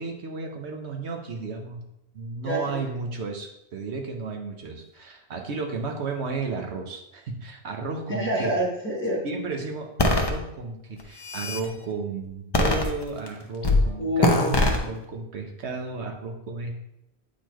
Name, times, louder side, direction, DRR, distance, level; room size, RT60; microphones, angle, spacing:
voice 1, 0.0-1.8 2.1-8.6 9.2-16.7, right 4 dB, 75° right, 2 dB, 1.2 m, -33 dB
voice 2, 8.1-9.2 14.0-15.0, equal, 10° left, -4 dB, 1.3 m, -28 dB
sound 1, 10.0-10.3 11.0-11.6 12.5-13.3 13.6-13.8 14.2-14.8, left 2 dB, 25° left, 0.7 m, -21 dB
8.3 x 4.1 x 3.0 m, 0.83 s
omnidirectional pair, 1.1 m